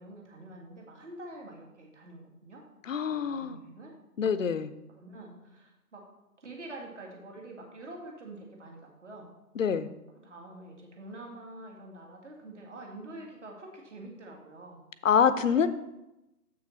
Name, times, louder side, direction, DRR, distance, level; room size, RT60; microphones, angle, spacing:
voice 1, 0.0-2.6 3.0-3.9 4.9-6.1 6.4-9.3 10.2-14.8 15.5-15.7, right 2 dB, 50° right, 0 dB, 2.0 m, -46 dB
voice 2, 2.9-3.6 4.2-4.7 9.6-9.9 15.0-15.7, left 7 dB, 55° left, 12 dB, 0.6 m, -25 dB
7.1 x 6.2 x 4.3 m, 0.93 s
figure-of-eight pair, 145°, 47 cm